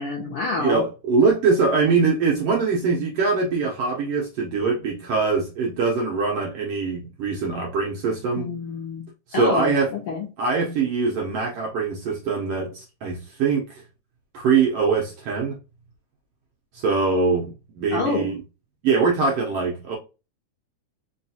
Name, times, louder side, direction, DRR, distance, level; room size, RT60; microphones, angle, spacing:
voice 1, 0.0-0.8 8.4-9.0 9.3-10.3 17.9-18.3, left 4 dB, 65° left, 1.4 m, -27 dB
voice 2, 0.6-8.5 9.3-9.9 10.4-13.6 14.3-15.6 16.7-18.3 18.8-20.0, right 4 dB, 70° right, 1.5 m, -22 dB
4.7 x 3.1 x 2.8 m
omnidirectional pair, 3.6 m